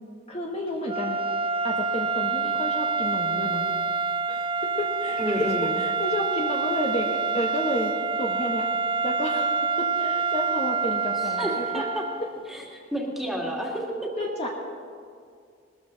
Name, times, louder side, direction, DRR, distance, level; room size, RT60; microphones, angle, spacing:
voice 1, 0.3-1.2 1.6-3.7 4.3-5.2 5.8-7.9 8.2-8.7 9.0-9.5 9.8-11.8 14.2-14.5, left 1 dB, 35° left, 0 dB, 1.3 m, -31 dB
sound 1, 0.8-12.4, right 4 dB, 30° right, 0.6 m, -27 dB
voice 2, 5.2-5.8 11.2-12.0 12.5-14.1, equal, ahead, -2 dB, 2.2 m, -30 dB
20.5 x 13.5 x 4.0 m, 2.2 s
head